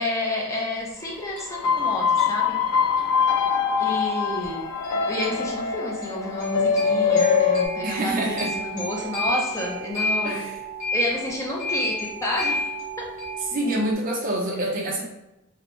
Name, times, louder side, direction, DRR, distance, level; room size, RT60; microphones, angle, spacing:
voice 1, 0.0-2.6 3.8-4.6 5.1-10.4 10.9-12.7 13.0-13.1, left 1 dB, 15° left, -2 dB, 0.4 m, -29 dB
sound 1, 1.0-13.9, left 1 dB, 35° left, 0.9 m, -33 dB
sound 2, 1.5-7.7, left 6 dB, 85° left, 0.3 m, -23 dB
voice 2, 7.8-8.5 10.2-10.6 13.5-15.0, right 1 dB, 35° right, -2 dB, 0.6 m, -26 dB
2.6 x 2.0 x 3.0 m, 0.93 s
head